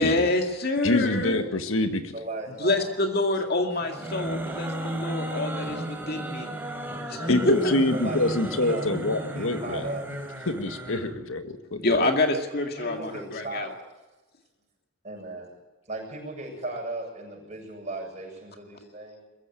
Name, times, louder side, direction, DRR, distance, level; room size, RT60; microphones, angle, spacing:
voice 1, 0.0-1.4 2.6-6.5 7.1-7.7 11.8-13.7, left 2 dB, 50° left, 4 dB, 2.2 m, -26 dB
voice 2, 0.8-2.1 7.3-9.9 10.5-12.0, left 2 dB, 85° left, 8 dB, 1.7 m, -26 dB
voice 3, 2.1-2.9 5.5-5.9 7.9-8.9 9.2-10.4 12.8-13.7 15.0-15.5 15.9-19.2, right 2 dB, 35° right, 0 dB, 7.6 m, -37 dB
sound 1, 3.8-11.1, right 1 dB, 10° right, 3.9 m, -34 dB
21.5 x 15.5 x 9.0 m, 1.1 s
head